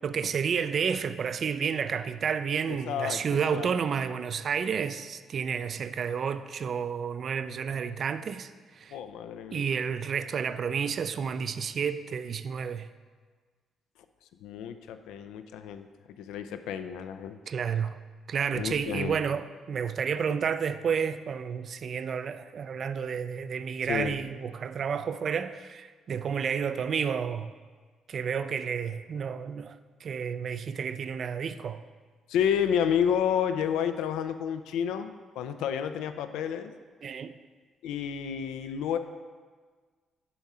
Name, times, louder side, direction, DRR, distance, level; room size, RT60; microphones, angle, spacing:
voice 1, 0.0-9.0 9.5-12.9 17.5-18.0 18.3-27.5 28.1-29.8 30.0-31.8 37.0-37.4, right 7 dB, 55° right, 0.3 m, -31 dB
voice 2, 2.7-3.7 8.9-9.7 14.4-15.9 16.2-17.4 18.5-19.2 23.9-24.2 32.3-36.7 37.8-39.0, left 8 dB, 85° left, 0.4 m, -30 dB
6.9 x 4.9 x 4.2 m
supercardioid pair, 70°, 0 cm